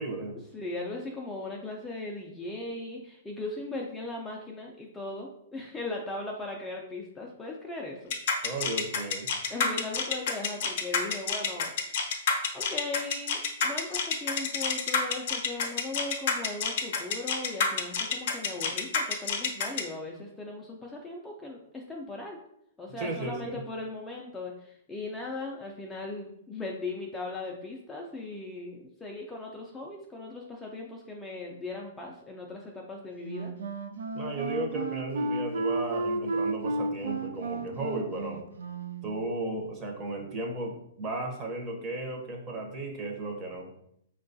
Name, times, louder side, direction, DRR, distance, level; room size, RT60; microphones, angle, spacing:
voice 1, 0.0-0.4 8.4-9.3 22.9-23.5 34.1-38.4 39.0-43.7, right 2 dB, 25° right, 1 dB, 0.7 m, -35 dB
voice 2, 0.5-8.1 9.5-11.7 12.2-22.4 22.8-33.5, left 2 dB, 10° left, -1 dB, 0.3 m, -38 dB
sound 1, 8.1-19.8, left 5 dB, 50° left, 0.6 m, -28 dB
Wind instrument woodwind instrument, 33.2-39.1, right 3 dB, 90° right, 0.3 m, -33 dB
4.6 x 2.2 x 2.6 m, 0.74 s
hypercardioid pair, 150°, 0 cm